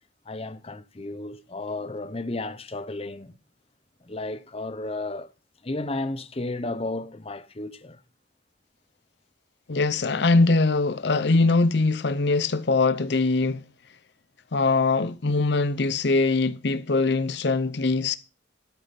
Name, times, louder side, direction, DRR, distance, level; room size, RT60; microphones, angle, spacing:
voice 1, 0.3-3.3 4.0-5.3 5.6-8.0, left 2 dB, 30° left, 0.8 m, -33 dB
voice 2, 9.7-13.6 14.5-18.2, left 3 dB, 65° left, 0.7 m, -22 dB
13.0 x 8.4 x 4.2 m
head